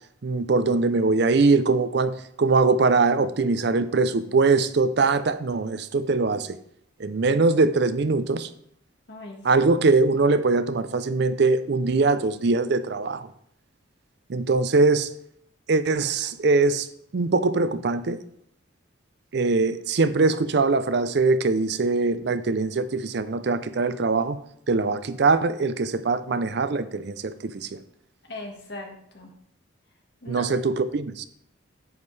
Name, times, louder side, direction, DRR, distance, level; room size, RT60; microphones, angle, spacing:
voice 1, 0.2-6.6 7.0-8.5 9.4-13.3 14.3-15.1 15.7-16.9 17.1-18.2 19.3-24.4 24.7-27.8 30.3-31.3, right 3 dB, 55° right, 0.5 m, -22 dB
voice 2, 9.1-9.6 28.2-29.3 30.2-30.5, left 2 dB, 55° left, 1.5 m, -39 dB
9.4 x 7.3 x 3.2 m
head